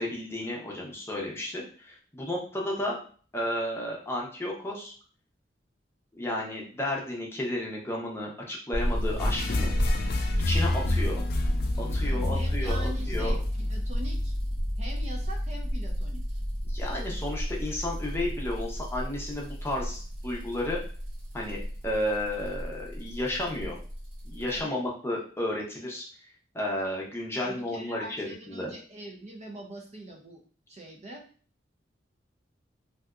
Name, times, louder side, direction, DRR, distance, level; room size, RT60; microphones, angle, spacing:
voice 1, 0.0-3.0 3.3-4.9 6.1-9.7 10.4-11.2 11.8-13.4 16.7-20.8 21.3-23.8 24.2-26.1 26.5-28.7, left 1 dB, 15° left, -2 dB, 0.7 m, -32 dB
sound 1, 8.7-24.6, equal, 85° right, 1.4 m, -31 dB
sound 2, 9.2-14.2, left 2 dB, 55° left, 0.4 m, -31 dB
voice 2, 12.0-13.4 13.7-14.3 14.8-16.2 24.5-24.8 27.4-30.4 30.7-31.2, right 1 dB, 40° right, 1 dB, 0.5 m, -43 dB
3.3 x 2.7 x 2.4 m, 0.42 s
head